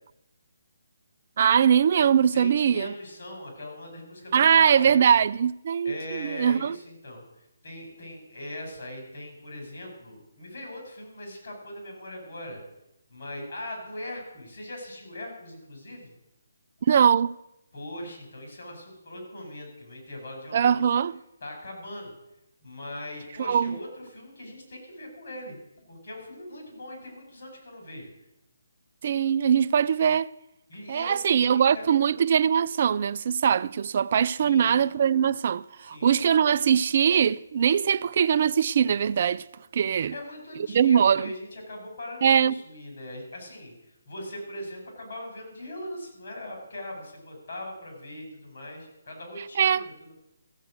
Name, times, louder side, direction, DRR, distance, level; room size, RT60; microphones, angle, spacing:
voice 1, 1.4-2.9 4.3-6.7 16.9-17.3 20.5-21.2 23.5-23.8 29.0-30.3 30.9-39.4 39.7-40.1 40.7-41.3 42.2-42.6 49.6-49.9, right 8 dB, 45° right, 0.4 m, -22 dB
voice 2, 2.3-5.1 5.8-7.2 7.6-12.6 13.1-16.1 17.7-20.9 21.4-22.1 22.6-25.6 25.9-28.1 30.7-31.8 34.3-34.8 35.8-36.2 40.1-50.1, left 1 dB, 60° left, 6.2 m, -40 dB
14.5 x 7.7 x 6.5 m
hypercardioid pair, 155°, 0 cm